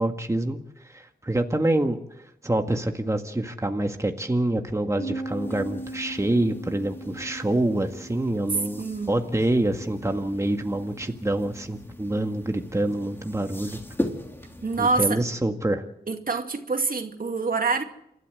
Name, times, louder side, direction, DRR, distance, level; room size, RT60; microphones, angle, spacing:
voice 1, 0.0-2.0 2.4-13.8 14.8-15.8, right 1 dB, 20° right, 4 dB, 1.8 m, -26 dB
Bass guitar, 5.0-11.2, right 1 dB, 40° left, 5.4 m, -40 dB
sound 1, 5.2-15.1, left 1 dB, 15° left, 3.4 m, -39 dB
voice 2, 8.8-9.1 14.6-15.2 16.1-17.8, right 4 dB, 60° right, 5 dB, 2.4 m, -26 dB
28.0 x 13.0 x 7.9 m, 0.78 s
wide cardioid pair, 65°, 17 cm